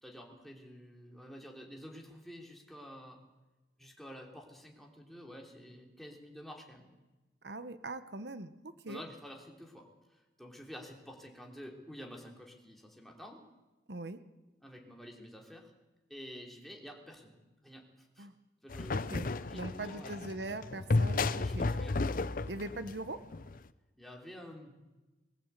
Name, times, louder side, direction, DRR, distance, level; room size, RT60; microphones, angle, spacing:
voice 1, 0.0-3.2 3.8-6.9 8.9-13.4 14.6-15.7 16.1-17.4 17.6-18.3 18.6-19.1 19.4-20.3 21.2-22.0 24.0-24.8, equal, ahead, 0 dB, 3.2 m, -50 dB
voice 2, 7.4-9.0 13.9-14.2 18.2-18.3 18.9-21.7 22.5-23.2, right 2 dB, 70° right, 11 dB, 1.1 m, -41 dB
sound 1, 18.7-23.6, left 3 dB, 50° left, 0.6 m, -33 dB
21.5 x 15.0 x 8.3 m, 1.1 s
head